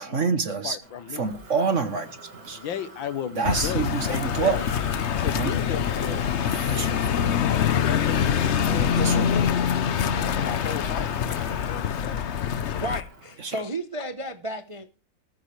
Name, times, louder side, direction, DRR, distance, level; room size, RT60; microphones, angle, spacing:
voice 1, 0.0-0.8 1.1-2.6 3.4-4.6 5.3-5.5 6.7-7.1 9.0-9.3 13.4-13.6, right 5 dB, 45° right, 1.2 m, -27 dB
voice 2, 0.6-1.3 2.5-4.7 5.2-6.2 7.3-9.7 10.2-12.3, left 9 dB, 80° left, 1.8 m, -35 dB
Motor vehicle (road), 0.8-13.3, right 2 dB, 75° right, 4.3 m, -45 dB
sound 1, 3.5-13.0, left 8 dB, 60° left, 0.7 m, -25 dB
voice 3, 12.8-15.0, right 1 dB, 30° right, 0.6 m, -33 dB
14.5 x 14.0 x 3.2 m
omnidirectional pair, 2.1 m